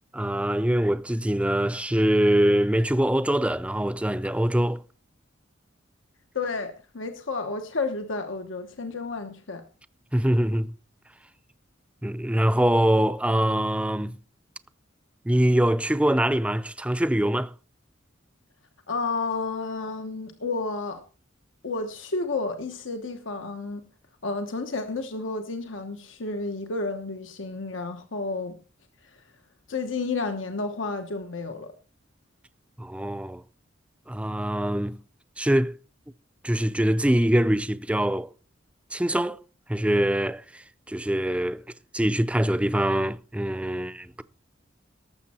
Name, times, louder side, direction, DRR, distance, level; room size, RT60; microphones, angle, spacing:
voice 1, 0.1-4.8 10.1-10.7 12.0-14.2 15.3-17.5 32.8-33.4 34.1-35.0 35.4-35.8 36.4-38.3 38.9-39.4 39.7-41.6 41.9-44.2, right 1 dB, 5° right, 0.5 m, -23 dB
voice 2, 6.3-9.6 18.9-21.0 21.6-23.8 24.2-28.6 29.7-31.7, left 3 dB, 85° left, 1.2 m, -31 dB
18.5 x 7.4 x 4.4 m
head